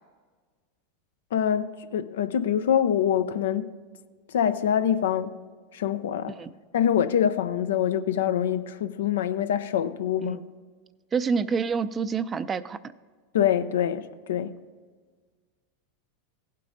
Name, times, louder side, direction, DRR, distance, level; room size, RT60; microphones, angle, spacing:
voice 1, 1.3-3.7 4.3-5.4 5.7-6.4 6.7-10.4 13.3-14.6, left 9 dB, 80° left, 0.5 m, -25 dB
voice 2, 11.1-12.8, right 5 dB, 25° right, 0.4 m, -27 dB
15.5 x 8.3 x 2.6 m
hypercardioid pair, 100°, 0 cm